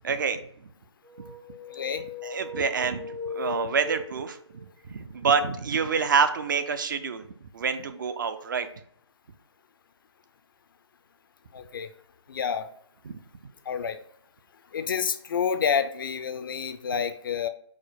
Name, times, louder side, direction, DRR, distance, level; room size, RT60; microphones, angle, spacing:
voice 1, 0.0-0.4 2.2-4.4 4.9-7.3 7.5-8.7 13.0-13.2, right 5 dB, 45° right, 10 dB, 0.4 m, -27 dB
sound 1, 1.0-4.7, left 3 dB, 80° right, 0.8 m, -38 dB
voice 2, 1.7-2.0 11.5-11.9 12.3-12.7 13.7-14.0 14.7-17.5, left 7 dB, 50° left, 9 dB, 0.4 m, -28 dB
4.8 x 2.0 x 4.1 m, 0.64 s
figure-of-eight pair, 145°, 15 cm